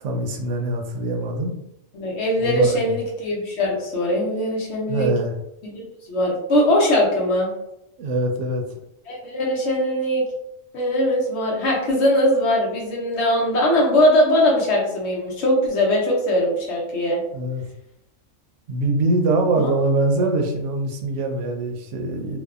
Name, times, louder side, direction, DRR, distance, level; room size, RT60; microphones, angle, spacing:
voice 1, 0.0-1.5 2.4-2.9 4.9-5.3 8.0-8.6 17.3-17.6 18.7-22.4, right 2 dB, 75° right, 3 dB, 0.9 m, -23 dB
voice 2, 1.9-5.1 5.6-7.5 9.1-10.2 10.7-17.2 19.5-19.7, left 1 dB, 65° left, -2 dB, 0.9 m, -21 dB
2.6 x 2.3 x 2.3 m, 0.83 s
omnidirectional pair, 1.3 m